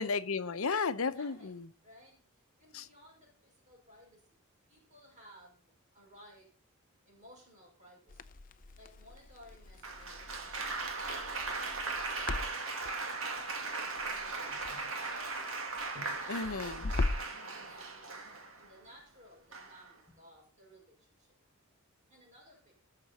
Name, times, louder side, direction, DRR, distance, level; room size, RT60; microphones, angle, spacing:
voice 1, 0.0-1.7 2.7-2.9 16.3-16.9, left 4 dB, 75° left, 0.8 m, -33 dB
voice 2, 1.1-1.6 1.8-2.2 2.6-6.5 7.0-8.3 8.8-12.4 13.4-14.6 15.0-15.7 16.2-21.3 22.1-22.7, equal, 35° right, 5.9 m, -58 dB
Crackle, 8.1-17.4, left 2 dB, 40° left, 0.6 m, -41 dB
Applause, 9.8-18.7 19.5-19.9, right 3 dB, 70° right, 2.2 m, -38 dB
19.5 x 6.9 x 4.2 m
head